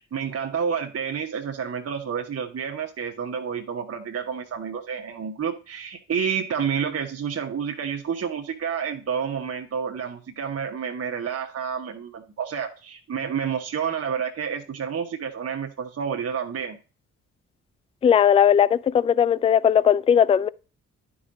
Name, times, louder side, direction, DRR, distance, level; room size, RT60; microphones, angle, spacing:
voice 1, 0.1-16.8, right 7 dB, 40° right, 1.1 m, -29 dB
voice 2, 18.0-20.5, left 8 dB, 20° left, 0.3 m, -18 dB
11.0 x 4.8 x 3.9 m
hypercardioid pair, 40°, 36 cm